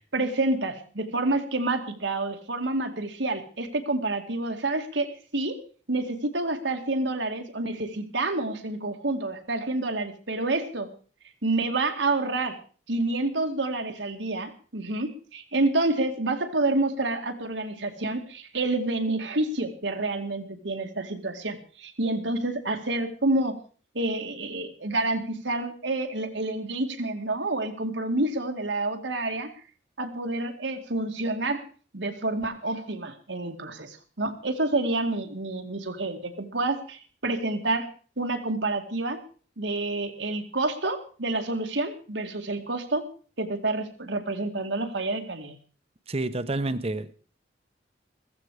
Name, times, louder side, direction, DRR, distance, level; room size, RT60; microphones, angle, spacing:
voice 1, 0.1-5.6 5.9-10.9 11.4-12.6 12.9-23.6 23.9-29.5 30.0-31.6 31.9-37.9 38.2-39.2 39.6-43.1 43.4-45.6, right 2 dB, 90° right, 2.3 m, -28 dB
voice 2, 46.1-47.1, right 2 dB, 35° right, 0.9 m, -29 dB
15.5 x 14.5 x 4.9 m
head